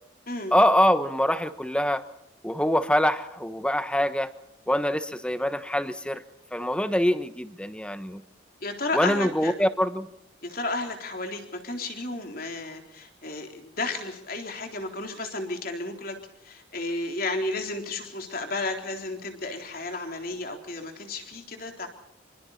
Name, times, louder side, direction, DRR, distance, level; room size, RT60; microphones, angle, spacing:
voice 1, 0.5-2.0 2.4-4.3 4.7-6.2 6.5-8.2 8.9-10.1, equal, 5° left, 11 dB, 1.1 m, -24 dB
voice 2, 8.6-9.5 10.4-16.2 16.4-21.9, left 2 dB, 50° left, 4 dB, 3.9 m, -33 dB
27.0 x 25.0 x 4.3 m, 0.85 s
head